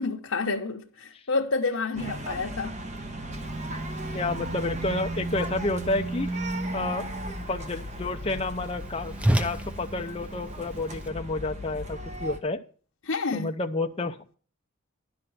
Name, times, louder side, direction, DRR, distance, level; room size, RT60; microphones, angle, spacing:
voice 1, 0.0-2.7 13.0-13.5, left 3 dB, 80° left, 1.0 m, -29 dB
sound 1, 2.0-12.4, right 1 dB, 35° right, 1.4 m, -35 dB
Whoosh swoosh swish, 3.3-11.1, right 1 dB, 5° right, 0.7 m, -35 dB
voice 2, 4.1-6.3 6.7-7.0 7.5-12.6 13.3-14.2, left 2 dB, 30° left, 0.6 m, -30 dB
11.5 x 5.9 x 7.8 m
head